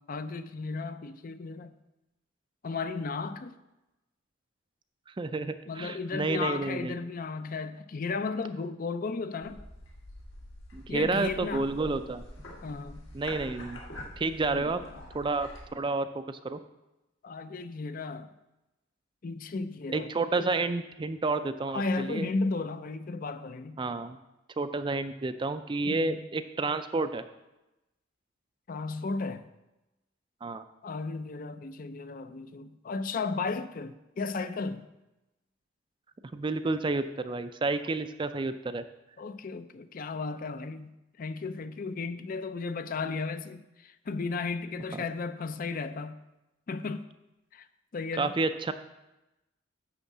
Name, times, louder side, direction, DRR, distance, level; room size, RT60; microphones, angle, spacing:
voice 1, 0.1-1.7 2.6-3.6 5.7-9.6 10.9-11.7 12.6-13.1 14.5-14.9 17.2-18.3 19.2-20.1 21.7-23.8 25.8-26.2 28.7-29.5 30.8-34.9 39.2-46.2 46.7-47.1 47.5-47.7 47.9-48.3, left 4 dB, 45° left, 0.4 m, -34 dB
voice 2, 5.1-7.0 10.7-12.2 13.1-13.8 14.2-14.8 15.1-16.6 19.9-22.3 23.8-24.2 24.6-27.2 30.4-30.6 36.3-38.8 44.9-45.0 48.2-48.7, right 3 dB, 25° right, 0.4 m, -30 dB
sound 1, 9.4-15.7, left 1 dB, 70° left, 1.6 m, -45 dB
11.0 x 3.7 x 7.2 m
head